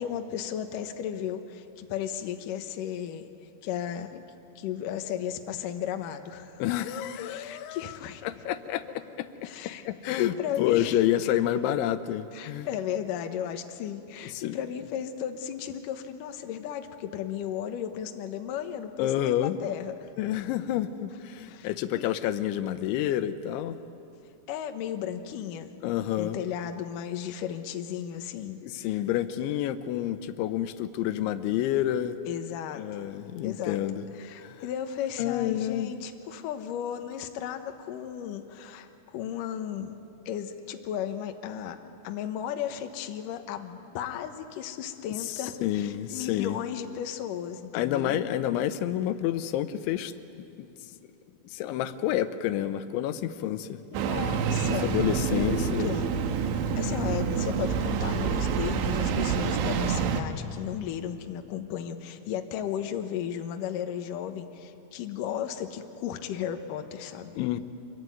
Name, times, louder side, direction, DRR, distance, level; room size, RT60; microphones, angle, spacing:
voice 1, 0.0-3.3 3.6-4.2 4.6-6.6 7.2-8.2 9.4-9.8 10.2-11.0 12.3-20.1 21.5-21.7 22.0-22.1 24.5-25.7 26.2-29.0 32.3-32.8 33.4-33.8 34.2-40.0 40.3-41.8 42.0-48.2 53.9-54.9 55.3-56.1 56.5-67.3, left 9 dB, 65° left, 6 dB, 2.2 m, -35 dB
voice 2, 6.6-8.0 8.2-9.3 9.6-12.7 14.2-14.6 19.0-19.6 20.2-23.8 25.8-26.4 28.6-32.2 32.7-34.1 34.4-34.6 35.2-35.9 45.3-46.6 47.7-50.9 51.5-53.9 54.6-55.9 67.4-67.6, left 12 dB, 90° left, 11 dB, 3.2 m, -29 dB
Engine starting, 53.9-60.2, right 6 dB, 90° right, 3.6 m, -27 dB
26.5 x 22.5 x 9.4 m, 2.7 s
omnidirectional pair, 5.2 m